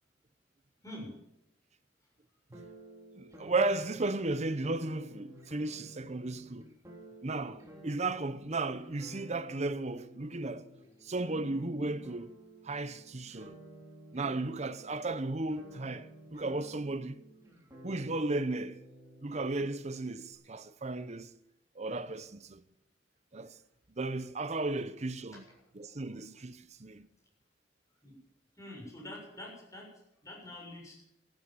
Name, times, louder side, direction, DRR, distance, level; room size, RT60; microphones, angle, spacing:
sound 1, 2.5-20.3, right 1 dB, 20° right, 3.7 m, -52 dB
voice 1, 3.1-6.7 7.2-10.7 11.0-12.3 12.6-13.6 14.1-17.2 17.8-18.8 19.2-21.3 21.8-22.6 23.3-23.6 24.0-25.4 25.7-27.1, right 2 dB, 40° right, 0.9 m, -35 dB
voice 2, 28.6-29.9 30.2-31.0, left 1 dB, 20° left, 7.0 m, -46 dB
14.0 x 13.0 x 7.3 m
head